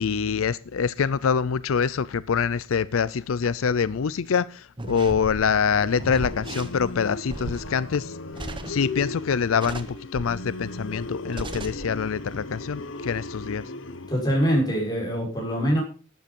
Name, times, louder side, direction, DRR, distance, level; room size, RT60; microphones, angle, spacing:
voice 1, 0.0-8.1 8.7-9.9 10.1-13.6, left 6 dB, 90° left, 0.5 m, -25 dB
sound 1, 4.8-9.2 9.6-10.4 10.8-10.9 11.3-11.9 12.2-12.4, right 1 dB, 25° right, 1.1 m, -36 dB
sound 2, 5.8-14.4, left 2 dB, 75° left, 1.1 m, -37 dB
voice 2, 14.1-15.8, equal, 20° left, 5.9 m, -23 dB
12.0 x 9.1 x 5.3 m
head